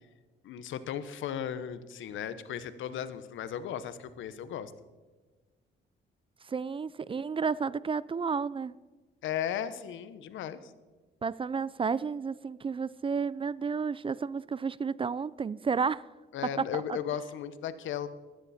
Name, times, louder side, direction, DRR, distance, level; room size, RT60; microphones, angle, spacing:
voice 1, 0.4-4.7 9.2-10.7 16.3-18.1, left 9 dB, 80° left, 1.0 m, -36 dB
voice 2, 6.5-8.7 11.2-16.0 16.6-17.0, right 5 dB, 25° right, 0.4 m, -31 dB
15.5 x 13.0 x 4.3 m
cardioid pair, 90°, 20 cm